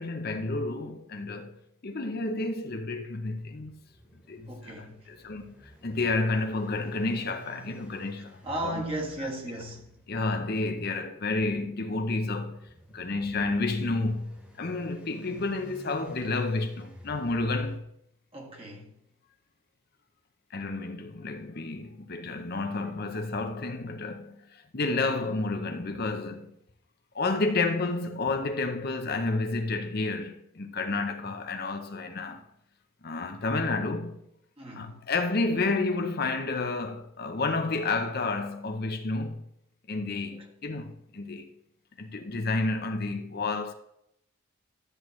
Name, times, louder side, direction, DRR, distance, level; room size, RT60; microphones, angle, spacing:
voice 1, 0.0-1.5 1.8-3.7 4.3-8.8 9.2-9.3 10.1-12.6 12.9-17.8 20.5-26.5 27.1-32.4 33.0-34.2 34.7-39.4 39.9-41.5 42.0-43.7, left 3 dB, 45° left, 0.7 m, -30 dB
sound 1, 3.6-17.8, right 1 dB, 5° right, 1.0 m, -51 dB
voice 2, 4.5-5.1 8.4-9.9 18.3-18.9 34.6-35.0 40.3-40.4, right 1 dB, 25° right, 1.6 m, -36 dB
12.5 x 7.8 x 3.2 m
head